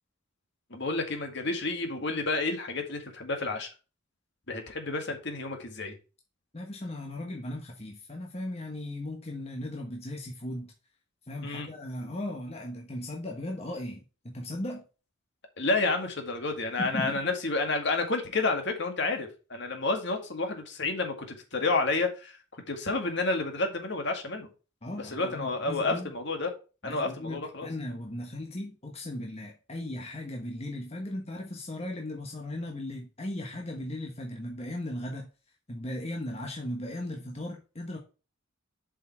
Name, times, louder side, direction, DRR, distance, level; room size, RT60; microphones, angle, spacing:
voice 1, 0.7-3.7 4.5-5.9 11.4-11.7 15.6-24.5 25.0-26.5 26.8-27.7, left 3 dB, 55° left, 4 dB, 2.1 m, -30 dB
voice 2, 6.5-10.7 11.3-14.8 16.8-17.3 24.8-26.1 26.8-35.3 35.7-38.0, left 1 dB, 30° left, 1 dB, 1.2 m, -37 dB
7.4 x 5.6 x 4.4 m, 0.32 s
head